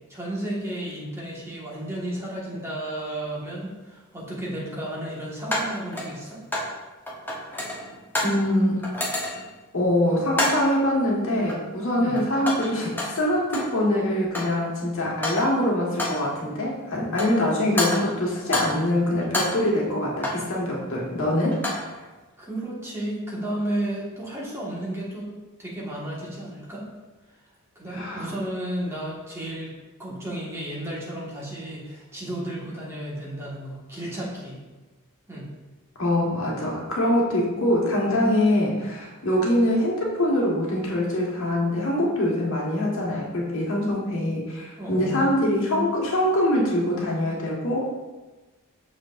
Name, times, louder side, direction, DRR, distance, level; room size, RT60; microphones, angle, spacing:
voice 1, 0.1-6.4 12.0-12.2 22.4-25.3 25.6-26.9 27.7-29.7 30.0-34.6 35.3-35.5 44.8-45.3, right 1 dB, 10° right, -5 dB, 1.5 m, -33 dB
sound 1, 3.3-3.4 5.5-6.8 7.1-8.5 8.8-9.6 10.3-10.8 11.5-11.9 12.2-13.8 14.1-14.7 15.1-15.6 16.0-16.3 17.0-17.5 17.8-18.9 19.2-20.5 21.4-21.9, left 1 dB, 10° left, 0.9 m, -29 dB
voice 2, 8.2-9.0 9.7-21.6 27.9-28.3 36.0-48.0, left 1 dB, 60° left, -3 dB, 1.5 m, -24 dB
6.4 x 6.2 x 2.5 m, 1.2 s
head